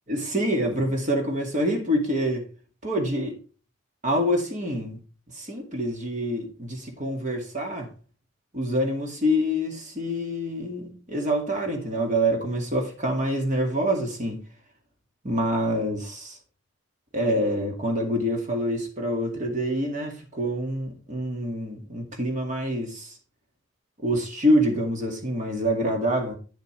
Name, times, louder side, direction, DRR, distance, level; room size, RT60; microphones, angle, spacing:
voice 1, 0.1-2.5 2.8-3.4 4.0-5.0 5.3-7.9 8.5-14.4 15.2-16.4 17.1-23.2 24.0-26.4, equal, 40° right, 2.1 m, -26 dB
10.0 x 6.7 x 3.3 m
head